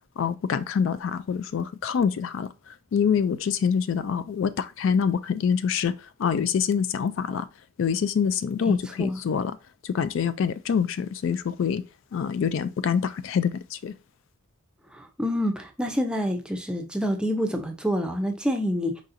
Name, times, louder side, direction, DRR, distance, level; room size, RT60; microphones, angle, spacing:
voice 1, 0.2-2.5 2.9-4.5 4.8-5.9 6.2-7.4 7.8-9.5 9.9-11.8 12.1-13.5 13.8-13.9, left 7 dB, 60° left, 0.3 m, -25 dB
voice 2, 8.6-9.2 14.9-19.0, equal, 5° right, 0.5 m, -27 dB
4.8 x 4.1 x 2.6 m
head